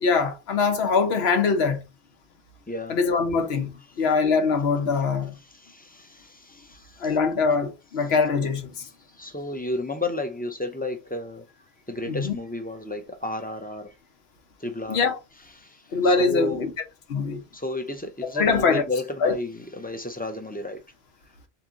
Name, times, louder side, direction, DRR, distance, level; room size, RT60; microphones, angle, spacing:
voice 1, 0.0-1.8 2.9-5.3 7.0-8.9 12.1-12.3 14.9-15.2 15.9-16.7 17.1-17.4 18.2-18.8 19.2-19.3, left 4 dB, 85° left, 1.1 m, -23 dB
voice 2, 2.7-3.0 5.4-7.2 9.1-11.5 11.9-13.9 14.6-15.0 15.6-16.7 17.5-20.8, left 1 dB, 10° left, 0.4 m, -32 dB
3.7 x 2.9 x 3.6 m
omnidirectional pair, 1.0 m